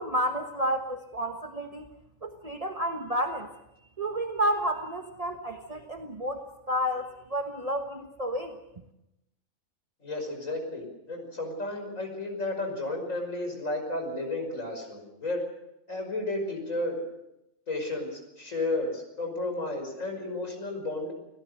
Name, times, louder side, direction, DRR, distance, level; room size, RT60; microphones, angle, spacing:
voice 1, 0.0-1.9 2.2-3.5 4.0-8.6, equal, 30° right, 4 dB, 1.4 m, -31 dB
voice 2, 10.0-15.4 15.9-17.0 17.7-21.1, left 2 dB, 70° left, 3 dB, 6.0 m, -32 dB
29.5 x 17.5 x 6.6 m, 0.87 s
omnidirectional pair, 1.4 m